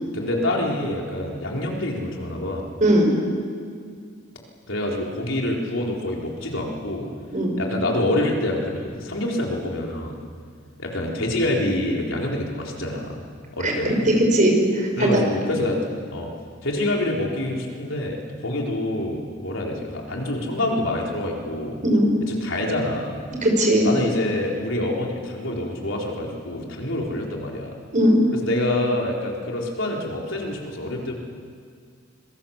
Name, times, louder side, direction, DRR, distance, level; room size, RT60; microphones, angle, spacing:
voice 1, 0.1-2.6 4.7-7.1 7.6-10.2 10.8-13.2 13.5-14.1 15.0-15.8 16.1-16.3 16.6-21.8 22.3-23.1 23.8-27.7 28.3-31.1, left 1 dB, 70° left, -1 dB, 4.4 m, -26 dB
voice 2, 2.8-3.1 7.3-7.5 13.6-13.7 14.2-15.2 21.8-22.1 23.4-23.9 27.9-28.2, right 1 dB, 40° right, 1 dB, 5.5 m, -18 dB
25.5 x 23.5 x 7.5 m, 2.1 s
head